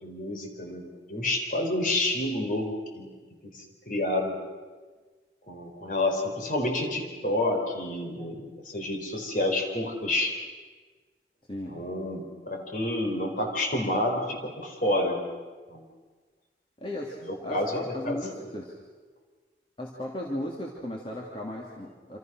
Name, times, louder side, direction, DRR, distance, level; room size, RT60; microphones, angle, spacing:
voice 1, 0.0-3.1 3.4-4.4 5.5-10.4 11.7-15.2 15.7-15.9 17.2-18.5, left 1 dB, 50° left, 3 dB, 4.4 m, -29 dB
voice 2, 16.8-18.7 19.8-22.2, left 1 dB, 30° left, -2 dB, 2.8 m, -36 dB
27.0 x 27.0 x 6.3 m, 1.4 s
head